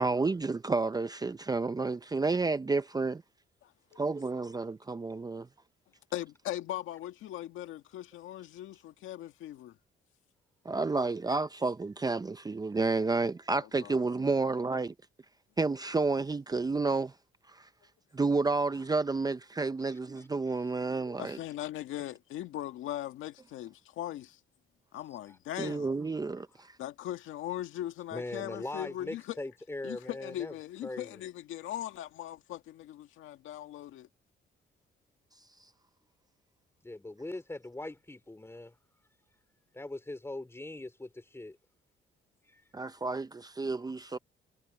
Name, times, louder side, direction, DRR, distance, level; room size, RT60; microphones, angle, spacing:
voice 1, 0.0-3.2 4.0-5.5 10.6-14.9 15.6-17.1 17.5-17.7 18.1-21.4 25.6-26.8 42.7-44.2, right 3 dB, 20° right, 0.6 m, -30 dB
voice 2, 3.6-4.0 6.1-9.8 13.6-14.0 21.2-24.4 24.9-25.9 26.8-29.4 29.8-34.1, left 13 dB, 90° left, 1.9 m, -39 dB
voice 3, 19.8-20.3 25.3-25.4 28.1-30.5 30.8-31.2 36.8-38.7 39.7-41.6 42.5-42.6, left 2 dB, 10° left, 3.1 m, -41 dB
cardioid pair, 90°, 20 cm